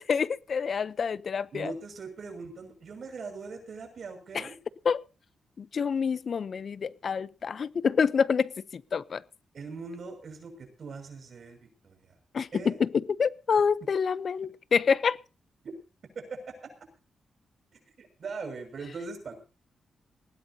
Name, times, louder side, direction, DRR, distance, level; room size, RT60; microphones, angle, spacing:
voice 1, 0.0-1.7 4.3-4.5 4.8-5.0 5.6-9.2 12.3-15.2, left 6 dB, 50° left, 0.7 m, -27 dB
voice 2, 1.5-4.5 9.5-12.1 12.5-12.8 15.6-15.8 16.1-16.5 18.0-19.4, right 4 dB, 50° right, 6.2 m, -41 dB
19.5 x 17.5 x 2.8 m
wide cardioid pair, 155°, 0 cm